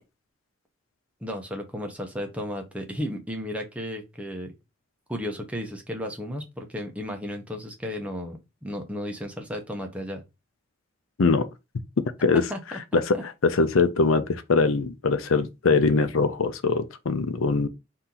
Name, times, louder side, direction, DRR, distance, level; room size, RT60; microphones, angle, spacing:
voice 1, 1.2-4.5 5.1-10.2 12.3-13.2, equal, 5° right, 0.8 m, -34 dB
voice 2, 13.4-17.7, left 4 dB, 90° left, 0.6 m, -22 dB
4.3 x 2.8 x 3.8 m
head